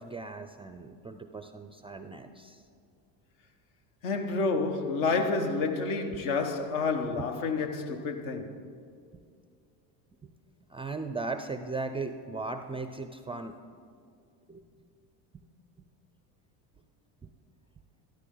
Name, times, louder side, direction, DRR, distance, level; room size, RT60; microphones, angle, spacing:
voice 1, 0.0-2.6 7.1-7.2 10.2-10.3 10.7-13.5 14.5-14.6 17.2-17.3, right 3 dB, 15° right, 0.4 m, -37 dB
voice 2, 4.0-8.6, left 4 dB, 70° left, 1.4 m, -29 dB
13.5 x 12.5 x 3.8 m
supercardioid pair, 90°, 48 cm